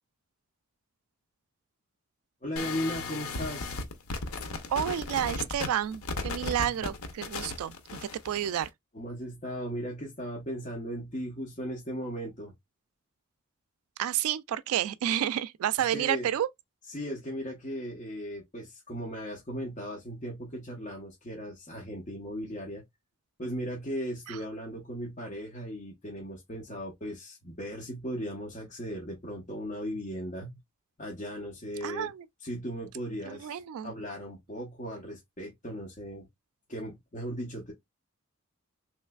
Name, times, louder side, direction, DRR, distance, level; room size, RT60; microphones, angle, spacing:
voice 1, 2.4-3.8 6.6-6.7 8.9-12.5 15.9-16.3 16.9-22.8 23.4-30.6 31.0-32.1 32.4-36.3 36.7-37.7, equal, 35° left, 0.8 m, -37 dB
sound 1, 2.6-8.7, left 3 dB, 80° left, 0.6 m, -36 dB
voice 2, 4.7-8.7 14.0-16.5 24.3-24.4 31.8-32.3 33.3-33.9, right 10 dB, 80° right, 0.3 m, -30 dB
3.3 x 3.1 x 2.2 m
head